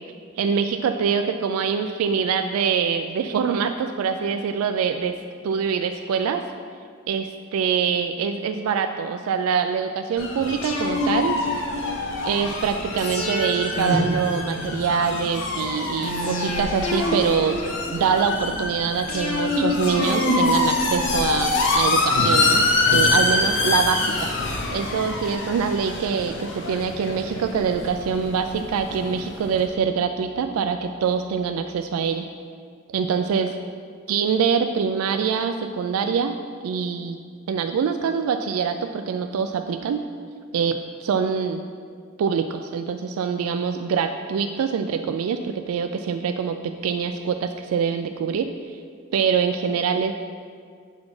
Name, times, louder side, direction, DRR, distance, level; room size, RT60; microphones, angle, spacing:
voice 1, 0.4-5.1 5.4-6.4 7.1-11.4 12.3-17.6 17.9-24.3 24.7-32.3 32.9-33.5 34.1-36.3 36.6-37.2 37.5-40.0 40.5-41.6 42.2-48.5 49.1-50.1, right 6 dB, 85° right, 8 dB, 0.3 m, -24 dB
sound 1, 10.2-29.7, left 3 dB, 60° left, 0.8 m, -26 dB
sound 2, 10.6-12.2 13.0-15.1 16.0-18.2 19.1-21.5 22.1-23.8 24.1-24.2, left 1 dB, 85° left, 1.3 m, -27 dB
7.2 x 4.1 x 4.8 m, 2.1 s
head